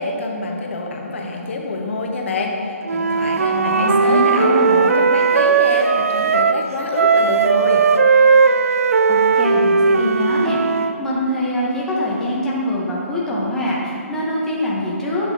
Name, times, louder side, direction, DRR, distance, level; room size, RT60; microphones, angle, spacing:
voice 1, 0.0-7.8, left 3 dB, 55° left, 1 dB, 0.9 m, -26 dB
Wind instrument woodwind instrument, 2.9-6.6 6.9-11.0, right 5 dB, 70° right, 0.3 m, -16 dB
voice 2, 3.5-4.8 8.7-8.8 9.1-15.3, equal, 5° left, -6 dB, 0.8 m, -23 dB
8.4 x 5.6 x 2.7 m, 2.7 s
hypercardioid pair, 150°, 8 cm